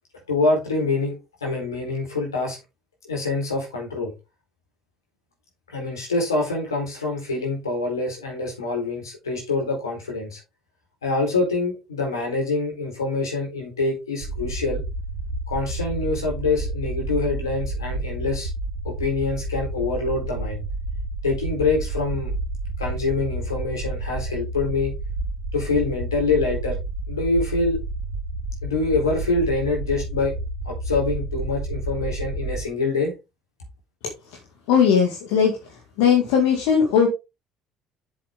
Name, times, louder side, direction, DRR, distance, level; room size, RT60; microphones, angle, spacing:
voice 1, 0.3-2.6 3.0-4.1 5.7-10.4 11.0-14.8 15.5-18.5 18.8-20.6 21.2-22.3 22.8-24.9 25.5-26.7 27.1-27.8 28.6-30.3 30.6-33.1, left 3 dB, 85° left, 0 dB, 4.2 m, -25 dB
sound 1, 14.2-32.6, right 2 dB, 75° right, 1.5 m, -30 dB
voice 2, 34.7-35.5 36.0-37.1, left 7 dB, 65° left, 3 dB, 2.0 m, -18 dB
7.8 x 7.3 x 3.7 m, 0.24 s
figure-of-eight pair, 55°, 2 cm